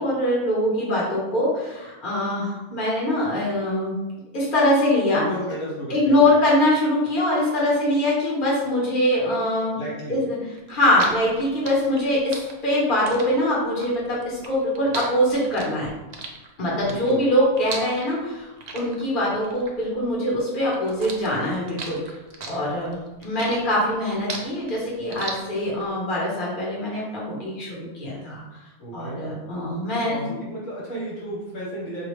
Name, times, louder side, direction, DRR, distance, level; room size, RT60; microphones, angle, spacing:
voice 1, 0.0-4.0 4.3-5.2 5.9-9.7 10.1-10.4 10.7-15.9 16.6-22.0 22.5-28.4 28.9-30.2, left 1 dB, 40° left, -5 dB, 1.3 m, -23 dB
voice 2, 5.1-6.4 9.8-10.2 16.8-17.3 28.8-29.2 30.1-32.1, right 1 dB, 65° left, -6 dB, 1.4 m, -33 dB
sound 1, 10.6-20.4 20.7-25.9, right 3 dB, 75° right, 0.3 m, -37 dB
4.8 x 2.4 x 3.2 m, 1.0 s
omnidirectional pair, 1.5 m